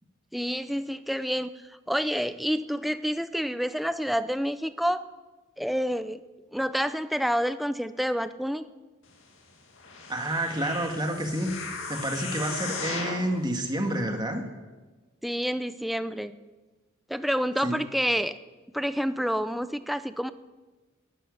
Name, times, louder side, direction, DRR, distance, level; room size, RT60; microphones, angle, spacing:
voice 1, 0.3-1.5 1.9-5.1 5.6-6.2 6.5-8.6 15.2-16.3 17.1-18.4 18.7-20.3, equal, ahead, 12 dB, 0.5 m, -28 dB
sound 1, 9.8-13.3 13.9-14.0, left 4 dB, 65° left, 2.3 m, -37 dB
voice 2, 10.1-11.5 11.9-14.4 17.6-17.7, right 1 dB, 20° right, 3 dB, 1.8 m, -29 dB
12.0 x 10.0 x 9.9 m, 1.2 s
head